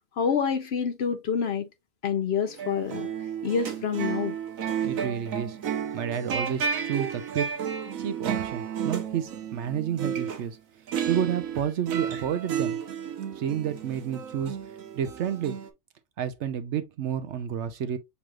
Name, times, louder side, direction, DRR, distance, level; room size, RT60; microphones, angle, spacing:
voice 1, 0.2-1.7 2.0-3.1 3.4-4.3, left 6 dB, 60° left, 0.8 m, -27 dB
sound 1, 2.5-10.4 10.9-15.7, right 8 dB, 85° right, 1.3 m, -32 dB
voice 2, 4.8-5.6 5.9-7.5 8.0-10.6 11.1-12.8 13.4-14.6 14.9-15.6 16.2-18.0, right 9 dB, 65° right, 0.8 m, -30 dB
6.8 x 3.1 x 2.3 m
omnidirectional pair, 1.4 m